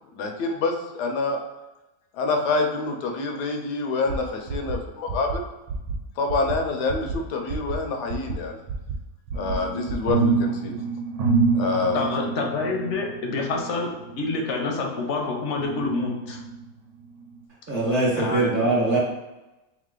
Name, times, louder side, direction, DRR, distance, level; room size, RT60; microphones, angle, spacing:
voice 1, 0.1-1.4 2.1-5.4 6.2-8.6 9.3-10.7 11.5-12.1, left 3 dB, 85° left, 3 dB, 1.2 m, -26 dB
sound 1, 4.1-4.2 4.5-4.8 5.1-5.4 5.7-6.0 6.3-6.6 6.9-7.2 7.5-7.8 8.1-8.4 8.7-9.0 9.3-9.6 9.9-10.1, right 5 dB, 90° right, 1.2 m, -30 dB
sound 2, 9.3-15.1 15.6-16.7 17.2-17.3, right 4 dB, 70° right, 1.1 m, -27 dB
voice 2, 11.9-13.9 14.2-16.4 18.1-18.7, left 3 dB, 60° left, 1 dB, 0.8 m, -27 dB
voice 3, 17.7-19.0, right 2 dB, 35° right, -5 dB, 1.0 m, -22 dB
3.5 x 3.2 x 3.7 m, 1.0 s
omnidirectional pair, 1.8 m